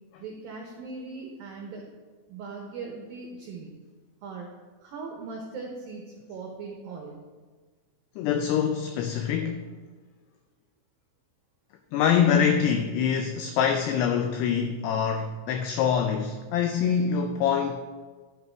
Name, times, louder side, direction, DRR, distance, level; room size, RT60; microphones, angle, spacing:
voice 1, 0.2-1.9 2.3-3.7 4.2-4.5 4.8-6.0 6.3-7.2, right 4 dB, 70° right, 0 dB, 2.2 m, -39 dB
voice 2, 8.2-9.7 11.9-17.8, left 7 dB, 85° left, 5 dB, 2.4 m, -25 dB
11.0 x 8.5 x 4.6 m, 1.4 s
omnidirectional pair, 5.5 m